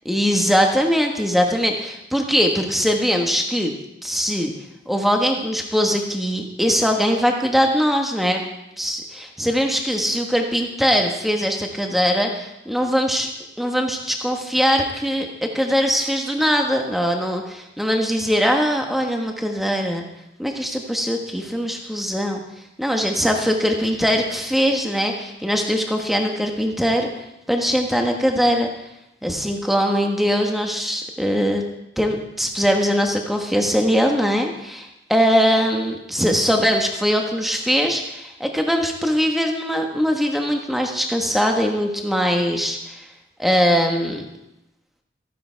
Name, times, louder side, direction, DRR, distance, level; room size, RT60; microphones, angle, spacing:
voice 1, 0.0-3.7 4.0-4.5 4.9-8.4 8.8-13.3 13.6-20.0 20.4-22.4 22.8-27.1 27.5-28.7 29.2-31.6 32.0-43.0 43.4-44.2, equal, ahead, 2 dB, 1.3 m, -21 dB
14.5 x 10.0 x 4.6 m, 0.91 s
head